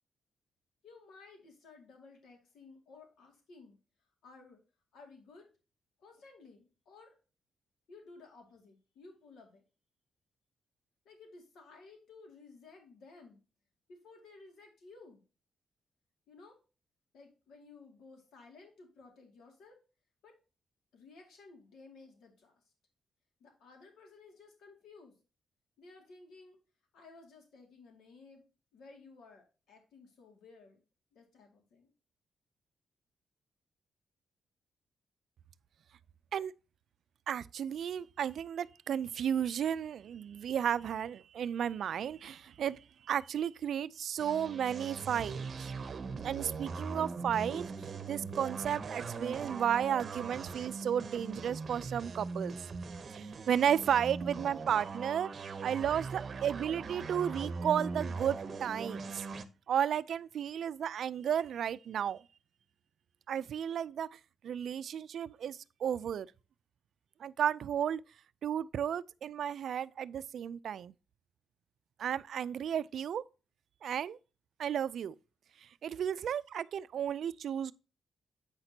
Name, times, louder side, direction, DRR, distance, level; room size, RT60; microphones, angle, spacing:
voice 1, 0.8-3.8 4.2-4.6 4.9-5.5 6.0-7.2 7.9-9.6 11.0-13.4 13.9-15.2 16.3-16.6 17.1-19.8 20.2-20.4 20.9-22.6 23.4-25.1 25.8-26.6 26.9-28.4 28.7-30.8 31.1-31.9, left 3 dB, 90° left, 2.2 m, -56 dB
voice 2, 37.3-45.7 46.2-47.6 48.1-52.5 53.1-55.3 55.6-59.2 59.7-62.2 63.3-66.3 67.2-68.0 68.4-70.9 72.0-73.2 73.8-74.2 74.6-75.1 75.6-77.7, right 9 dB, 70° right, 0.3 m, -33 dB
sound 1, 44.2-59.4, right 4 dB, 45° right, 0.7 m, -41 dB
8.7 x 5.9 x 2.8 m
cardioid pair, 110°, 0 cm